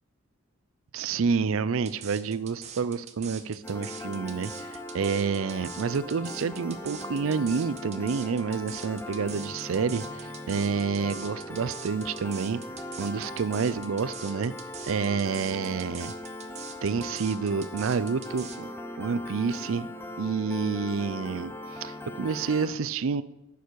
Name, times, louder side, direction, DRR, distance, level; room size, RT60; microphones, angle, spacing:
voice 1, 0.9-12.6 13.0-14.5 14.8-16.1 16.8-18.7 19.0-19.9 20.2-23.2, right 5 dB, 75° right, 16 dB, 0.5 m, -29 dB
sound 1, 1.9-18.6, right 8 dB, 30° right, 0.7 m, -44 dB
Piano, 3.6-22.7, left 1 dB, 10° left, 0.6 m, -40 dB
11.5 x 7.1 x 4.6 m, 1.0 s
head